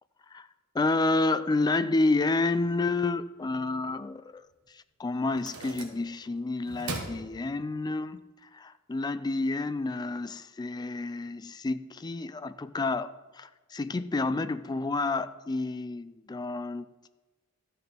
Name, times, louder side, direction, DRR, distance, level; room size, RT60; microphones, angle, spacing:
voice 1, 0.7-4.4 4.7-8.2 8.5-16.9, left 3 dB, 20° left, 13 dB, 0.3 m, -29 dB
sound 1, 4.5-4.6 5.3-6.3 6.6-8.0, right 3 dB, 70° right, 1.3 m, -40 dB
13.0 x 6.7 x 4.4 m, 1.2 s
head